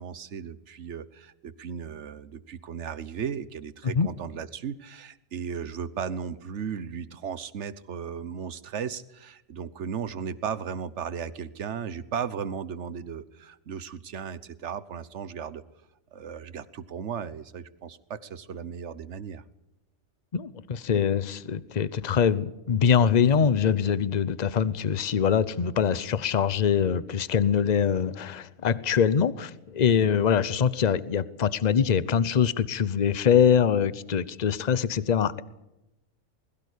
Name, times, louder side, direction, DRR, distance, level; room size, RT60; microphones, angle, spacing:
voice 1, 0.0-15.6 16.1-19.4, right 7 dB, 60° right, 16 dB, 1.3 m, -36 dB
voice 2, 20.3-35.4, left 7 dB, 40° left, 17 dB, 0.8 m, -23 dB
21.0 x 16.5 x 8.5 m, 0.93 s
omnidirectional pair, 1.4 m